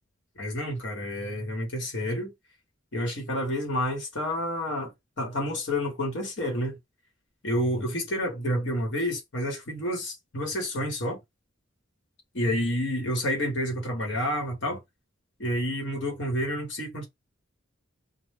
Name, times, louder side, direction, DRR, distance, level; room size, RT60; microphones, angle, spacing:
voice 1, 0.4-2.3 2.9-4.9 5.2-6.8 7.4-11.2 12.3-14.8 15.4-17.1, equal, 60° left, 1.1 m, -29 dB
2.2 x 2.1 x 3.3 m
head